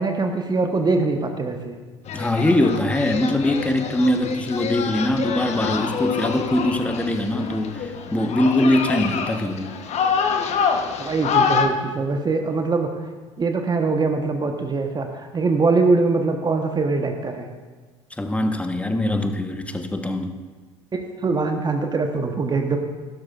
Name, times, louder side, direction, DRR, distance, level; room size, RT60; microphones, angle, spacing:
voice 1, 0.0-1.7 11.0-12.9 13.4-17.5 20.9-22.8, right 3 dB, 25° right, 4 dB, 1.1 m, -22 dB
sound 1, 2.1-11.7, left 6 dB, 45° left, 1.0 m, -26 dB
voice 2, 2.1-9.8 18.2-20.4, left 1 dB, 10° left, 7 dB, 1.1 m, -22 dB
15.5 x 12.5 x 2.5 m, 1.4 s
figure-of-eight pair, 60°, 16 cm